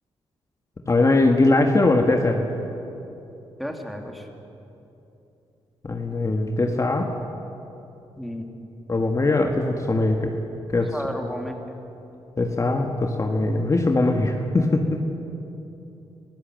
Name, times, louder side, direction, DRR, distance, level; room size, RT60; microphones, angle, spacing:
voice 1, 0.9-2.4 5.8-7.1 8.9-10.3 10.7-10.9 12.4-15.0, left 2 dB, 30° left, 3 dB, 1.7 m, -21 dB
voice 2, 3.6-4.3 8.2-8.5 10.9-11.6, equal, ahead, 2 dB, 2.8 m, -32 dB
26.0 x 15.5 x 7.7 m, 2.9 s
cardioid pair, 75°, 11 cm